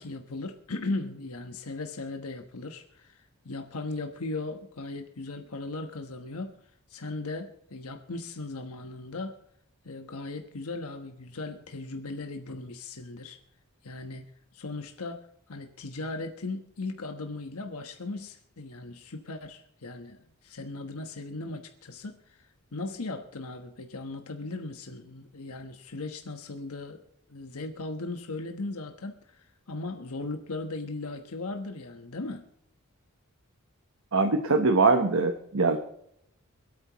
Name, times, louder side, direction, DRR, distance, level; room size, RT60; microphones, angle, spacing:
voice 1, 0.0-6.6 6.9-9.4 9.8-13.4 13.8-14.2 14.5-22.4 22.7-27.0 27.3-32.4, left 2 dB, 85° left, 5 dB, 1.2 m, -37 dB
voice 2, 34.1-35.8, right 3 dB, 65° right, 6 dB, 1.1 m, -22 dB
26.5 x 8.9 x 3.1 m, 0.72 s
head